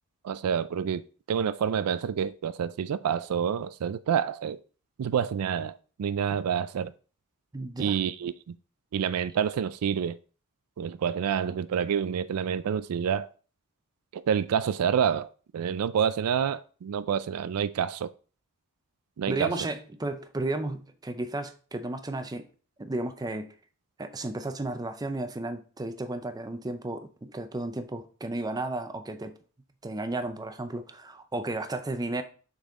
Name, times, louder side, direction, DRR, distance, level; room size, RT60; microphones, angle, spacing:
voice 1, 0.2-1.0 1.3-4.6 5.0-5.7 6.0-6.9 7.8-8.6 8.9-10.2 10.8-13.3 14.1-15.3 15.5-18.1 19.2-19.5, right 8 dB, 80° right, 0.4 m, -28 dB
voice 2, 7.5-8.0 19.3-22.5 22.8-23.5 24.0-29.3 29.8-32.2, right 2 dB, 15° right, 0.5 m, -33 dB
6.4 x 4.1 x 3.6 m
head